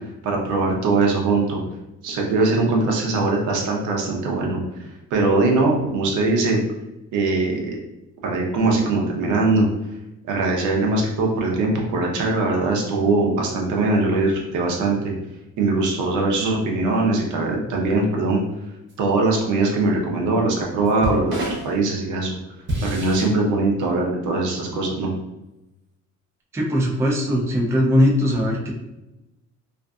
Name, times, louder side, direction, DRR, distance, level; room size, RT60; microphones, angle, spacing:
voice 1, 0.2-1.6 2.0-4.6 5.1-6.6 7.1-7.8 8.2-9.7 10.3-15.1 15.6-18.4 19.0-22.3 22.8-25.1, right 3 dB, 90° right, 0 dB, 0.7 m, -21 dB
sound 1, 18.9-19.0 20.9-21.8 22.7-23.3, equal, 40° right, 0.8 m, -27 dB
voice 2, 26.5-28.7, equal, 10° right, -2 dB, 0.3 m, -20 dB
2.5 x 2.5 x 2.3 m, 0.95 s
cardioid pair, 155°, 29 cm